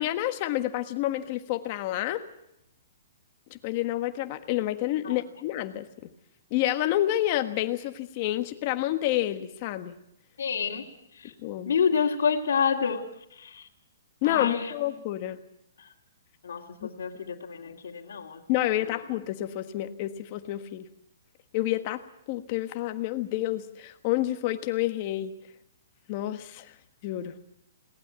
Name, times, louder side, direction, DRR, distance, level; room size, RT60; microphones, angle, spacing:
voice 1, 0.0-2.2 3.5-6.1 6.5-9.9 11.4-11.7 14.2-15.4 18.5-20.9 21.5-22.0 22.3-25.3 26.1-26.7 27.0-27.4, left 14 dB, 25° left, 9 dB, 1.4 m, -29 dB
voice 2, 10.4-11.3 11.6-13.0 13.3-13.7 14.2-14.7 15.8-15.9 16.4-18.4 18.8-18.9, left 6 dB, 65° left, -3 dB, 2.8 m, -28 dB
22.0 x 19.0 x 8.2 m, 0.79 s
hypercardioid pair, 180°, 0 cm